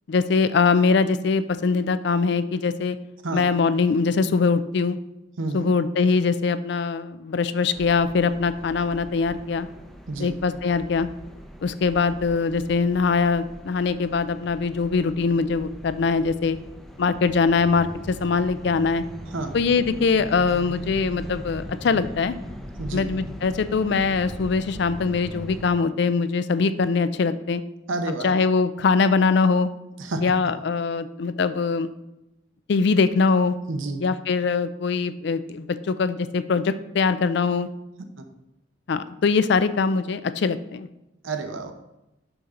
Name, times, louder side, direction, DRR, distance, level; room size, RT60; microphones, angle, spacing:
voice 1, 0.1-3.0 3.3-5.0 5.5-9.7 10.2-11.1 11.6-16.6 17.0-19.0 19.5-22.3 22.9-27.6 28.2-29.7 30.2-31.9 32.7-33.6 34.0-37.7 38.9-40.9, left 4 dB, 55° left, 13 dB, 0.4 m, -22 dB
voice 2, 5.4-5.7 10.1-10.3 19.3-19.5 22.8-23.1 27.9-28.4 30.0-30.3 33.7-34.0 38.2-38.3 41.2-41.7, right 2 dB, 80° right, 6 dB, 0.8 m, -29 dB
sound 1, 7.7-25.7, equal, ahead, 0.6 m, -40 dB
6.9 x 5.8 x 3.7 m, 0.94 s
head